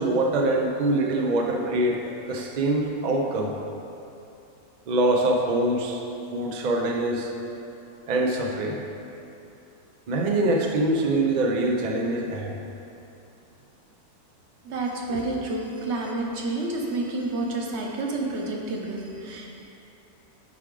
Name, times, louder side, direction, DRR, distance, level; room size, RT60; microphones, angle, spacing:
voice 1, 0.0-3.5 4.9-6.0 6.3-7.3 8.1-8.8 10.1-12.6, right 2 dB, 80° right, 1 dB, 0.4 m, -24 dB
voice 2, 14.6-19.5, right 2 dB, 50° right, -1 dB, 1.1 m, -29 dB
9.4 x 4.8 x 3.8 m, 2.7 s
omnidirectional pair, 1.6 m